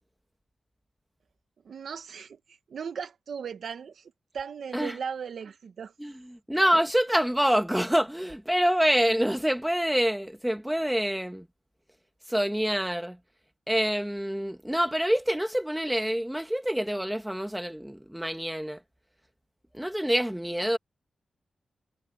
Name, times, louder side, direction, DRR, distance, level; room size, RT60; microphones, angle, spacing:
voice 1, 1.6-5.9 6.5-6.7, right 6 dB, 70° right, 1.4 m, -38 dB
voice 2, 6.0-11.5 12.3-13.2 13.7-18.8 19.7-20.8, equal, 5° right, 1.8 m, -26 dB
wide cardioid pair, 140°, 0 cm